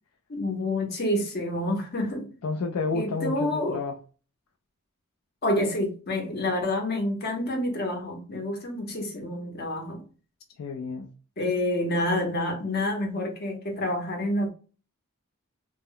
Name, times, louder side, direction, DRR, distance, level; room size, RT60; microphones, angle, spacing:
voice 1, 0.3-2.3 2.9-3.8 5.4-10.0 11.4-14.5, left 1 dB, 45° left, 0.7 m, -28 dB
voice 2, 2.4-4.0 10.6-11.1, left 4 dB, 65° left, 0.4 m, -30 dB
2.1 x 2.0 x 3.6 m
head